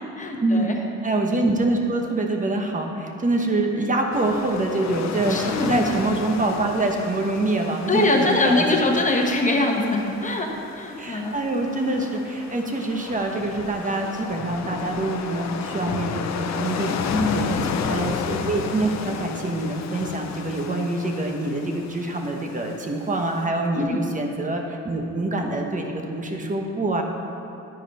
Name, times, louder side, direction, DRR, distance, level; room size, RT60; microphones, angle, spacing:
voice 1, 0.2-0.8 5.3-5.9 7.9-10.5 10.7-11.4 17.1-18.0 23.8-24.0, left 2 dB, 25° left, 1 dB, 1.2 m, -23 dB
voice 2, 1.0-8.9 9.8-9.9 11.0-17.0 17.3-17.5 17.9-27.0, right 2 dB, 25° right, 2 dB, 1.1 m, -25 dB
sound 1, 4.1-23.5, left 6 dB, 65° left, 0.6 m, -33 dB
12.0 x 4.9 x 4.1 m, 2.9 s
cardioid pair, 90°, 30 cm